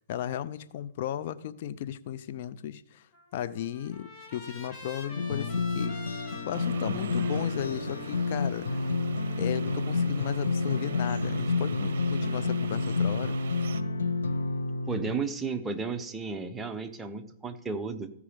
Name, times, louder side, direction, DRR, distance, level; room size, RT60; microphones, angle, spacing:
voice 1, 0.0-6.0 6.5-8.9 9.4-13.4, left 10 dB, 50° left, 13 dB, 0.5 m, -35 dB
Trumpet, 3.1-9.3, left 2 dB, 20° left, 2.1 m, -47 dB
sound 1, 5.1-15.1, left 3 dB, 90° left, 1.2 m, -29 dB
sound 2, 6.5-13.8, right 7 dB, 70° right, 0.6 m, -42 dB
voice 2, 14.9-18.1, right 4 dB, 10° right, 6 dB, 0.7 m, -33 dB
14.5 x 4.9 x 5.0 m, 0.77 s
hypercardioid pair, 140°, 0 cm